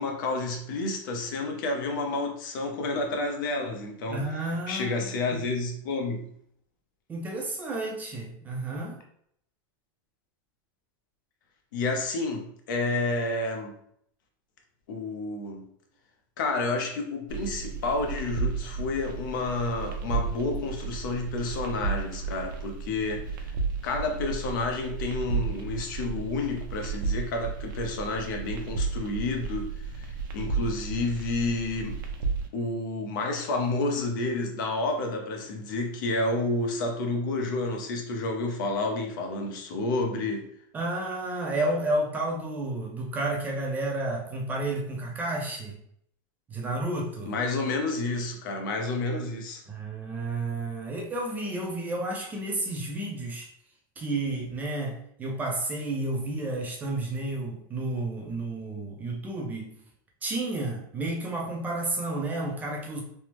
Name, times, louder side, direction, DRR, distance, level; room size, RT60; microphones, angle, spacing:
voice 1, 0.0-6.3 11.7-13.7 14.9-15.7 16.4-23.3 23.8-32.0 32.5-40.5 47.3-49.6, left 2 dB, 65° left, 3 dB, 0.7 m, -30 dB
voice 2, 4.1-5.4 7.1-9.0 40.7-45.8 46.5-47.4 49.7-53.5 54.0-59.7 60.2-63.0, right 2 dB, 15° right, 0 dB, 0.5 m, -31 dB
sound 1, 17.3-32.5, right 4 dB, 65° right, 0.6 m, -33 dB
3.3 x 2.0 x 3.0 m, 0.67 s
supercardioid pair, 155°, 11 cm